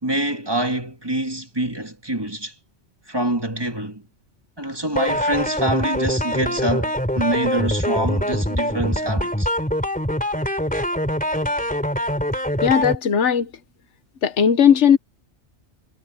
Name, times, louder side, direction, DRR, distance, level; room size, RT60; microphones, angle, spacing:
voice 1, 0.0-2.5 3.1-4.0 4.6-9.5, right 1 dB, 20° right, 2.1 m, -25 dB
sound 1, 5.0-13.0, equal, 5° left, 3.1 m, -23 dB
voice 2, 12.6-13.5 14.2-15.0, left 8 dB, 85° left, 1.3 m, -16 dB
omnidirectional pair, 1.2 m